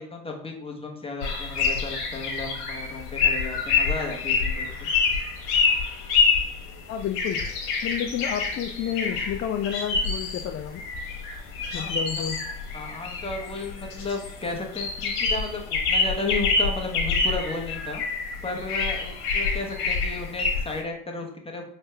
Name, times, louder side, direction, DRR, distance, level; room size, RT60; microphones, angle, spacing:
voice 1, 0.0-4.9 11.7-12.2 12.7-18.0 18.4-21.6, left 3 dB, 15° left, 1 dB, 1.1 m, -34 dB
sound 1, 1.2-20.8, left 4 dB, 70° left, 1.3 m, -27 dB
voice 2, 6.9-7.4 7.8-10.8 11.7-12.4, left 9 dB, 35° left, 5 dB, 0.4 m, -30 dB
4.3 x 3.3 x 3.3 m, 0.65 s
hypercardioid pair, 65°, 42 cm